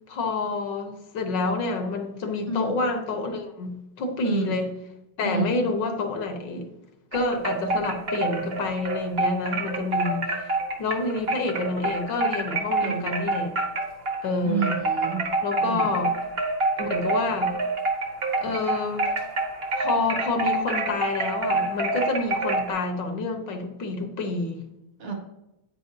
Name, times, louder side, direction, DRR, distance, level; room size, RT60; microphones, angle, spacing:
voice 1, 0.1-4.7 5.2-6.7 7.1-10.5 10.8-13.5 14.2-14.8 15.4-16.2 16.8-17.6 18.4-19.1 19.8-24.6, left 3 dB, 65° left, 5 dB, 1.7 m, -28 dB
voice 2, 5.2-5.6 12.8-13.1 14.4-15.3 15.6-15.9 25.0-25.1, right 6 dB, 75° right, 1 dB, 2.5 m, -29 dB
sound 1, 7.1-14.3 14.6-22.7, right 2 dB, 40° right, 1.0 m, -27 dB
9.4 x 8.8 x 2.7 m, 0.90 s
omnidirectional pair, 2.2 m